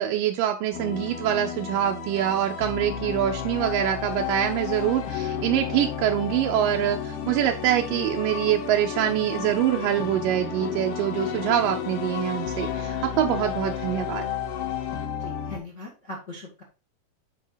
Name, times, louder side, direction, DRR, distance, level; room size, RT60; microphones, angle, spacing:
voice 1, 0.0-14.2, right 11 dB, 80° right, 3 dB, 2.0 m, -25 dB
sound 1, 0.7-15.6, left 6 dB, 70° left, 3.3 m, -34 dB
sound 2, 2.8-15.1, left 14 dB, 85° left, 2.6 m, -36 dB
voice 2, 15.2-16.6, left 2 dB, 55° left, 0 dB, 0.8 m, -40 dB
9.2 x 4.7 x 3.9 m, 0.32 s
omnidirectional pair, 4.6 m